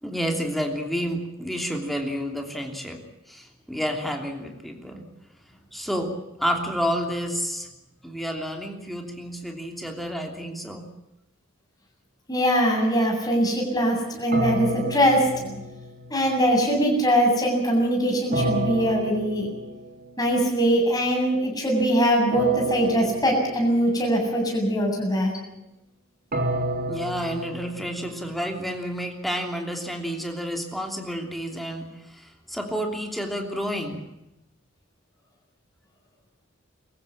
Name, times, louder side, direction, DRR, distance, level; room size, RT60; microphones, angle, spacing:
voice 1, 0.0-3.0 3.3-5.0 5.7-6.1 6.4-7.7 8.0-10.8 26.9-34.0, equal, ahead, 2 dB, 3.0 m, -30 dB
voice 2, 12.3-15.5 16.1-19.5 20.2-25.3, equal, 20° left, 0 dB, 7.9 m, -22 dB
sound 1, 14.3-16.4 18.3-20.2 22.3-24.2 26.3-28.5, right 1 dB, 45° right, 3.4 m, -30 dB
24.5 x 15.0 x 8.7 m, 0.92 s
head